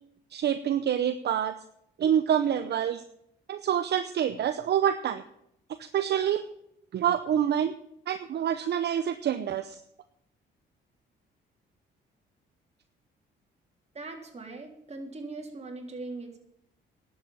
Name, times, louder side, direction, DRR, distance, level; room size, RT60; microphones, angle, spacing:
voice 1, 0.3-1.5 2.0-3.0 3.5-5.2 5.9-6.4 6.9-7.7 8.1-9.8, right 9 dB, 60° right, 10 dB, 0.8 m, -26 dB
voice 2, 13.9-16.4, right 3 dB, 35° right, 2 dB, 3.4 m, -40 dB
11.5 x 7.9 x 9.1 m, 0.75 s
cardioid pair, 90°, 20 cm